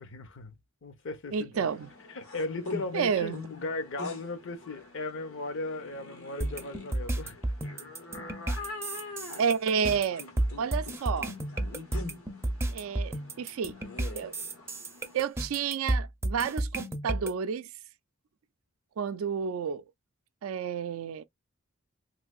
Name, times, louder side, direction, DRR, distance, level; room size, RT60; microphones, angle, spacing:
voice 1, 0.0-1.6 2.1-7.4 9.0-9.1, left 2 dB, 60° left, 0.8 m, -37 dB
voice 2, 1.3-1.9 2.9-3.4 9.4-10.2 10.6-11.4 12.7-13.8 14.2-14.3 15.1-17.7 19.0-19.8 20.4-21.2, right 6 dB, 70° right, 0.4 m, -30 dB
sound 1, 1.6-15.3, left 3 dB, 85° left, 1.2 m, -45 dB
sound 2, 6.4-17.3, right 1 dB, 10° right, 0.5 m, -32 dB
3.2 x 2.6 x 2.3 m
head